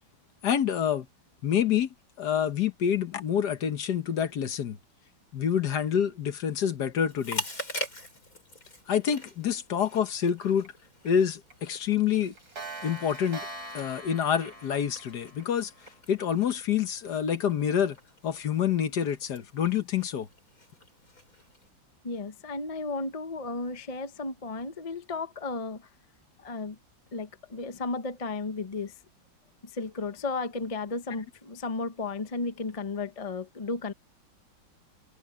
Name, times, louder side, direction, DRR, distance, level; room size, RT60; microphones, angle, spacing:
voice 1, 0.4-1.1 1.4-1.9 2.2-4.8 5.3-7.4 8.9-10.7 11.0-12.3 12.8-13.5 13.7-15.7 16.1-18.0 18.2-20.3, left 8 dB, 60° left, 1.6 m, -27 dB
Chewing mastication, 7.1-21.7, left 2 dB, 45° left, 8.5 m, -44 dB
Clock, 10.6-10.7 11.1-11.2 11.5-11.6 11.9-16.0, right 2 dB, 50° right, 3.9 m, -43 dB
voice 2, 22.0-25.9 26.4-26.8 27.1-29.0 29.6-33.9, left 3 dB, 30° left, 0.7 m, -34 dB
omnidirectional pair, 2.1 m